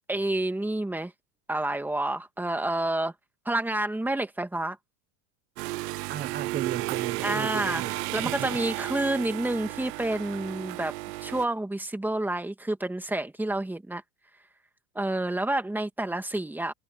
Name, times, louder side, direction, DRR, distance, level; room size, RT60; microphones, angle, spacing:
voice 1, 0.1-1.1 1.5-3.1 3.5-4.8 7.2-7.8 8.1-10.9 11.2-14.0 15.0-16.7, right 1 dB, 5° right, 2.0 m, -29 dB
sound 1, 5.6-11.5, right 20 dB, 80° right, 0.8 m, -33 dB
voice 2, 6.1-8.6, right 10 dB, 20° right, 0.9 m, -35 dB
supercardioid pair, 140°, 47 cm